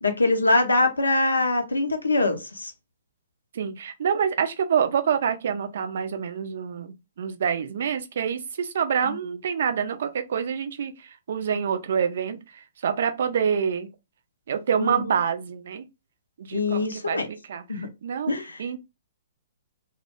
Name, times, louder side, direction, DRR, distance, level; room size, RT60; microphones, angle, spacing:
voice 1, 0.0-2.7 9.0-9.2 14.8-15.2 16.5-17.3 17.7-17.9 18.3-18.6, left 2 dB, 80° left, 0.5 m, -23 dB
voice 2, 3.5-13.9 14.5-15.8 16.4-18.3 18.6-18.8, right 7 dB, 60° right, 0.4 m, -27 dB
2.1 x 2.0 x 2.9 m
figure-of-eight pair, 120°, 0 cm